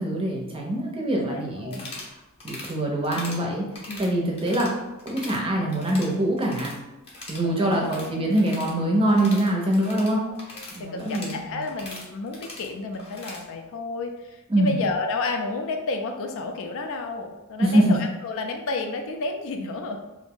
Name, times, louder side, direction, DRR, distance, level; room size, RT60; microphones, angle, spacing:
voice 1, 0.0-1.9 2.4-3.6 4.0-6.7 7.3-10.2 10.7-11.6 14.5-14.8 17.6-17.9, right 1 dB, 25° right, -1 dB, 0.5 m, -24 dB
voice 2, 1.3-1.8 3.9-4.0 7.4-8.3 9.0-9.4 10.2-20.0, left 3 dB, 60° left, 4 dB, 0.4 m, -31 dB
sound 1, 1.6-2.1 2.4-2.7 3.0-3.4 3.7-4.7 5.0-5.4 5.7-6.8 7.0-13.4, left 2 dB, 25° left, 0.6 m, -41 dB
2.5 x 2.0 x 3.6 m, 1.0 s
head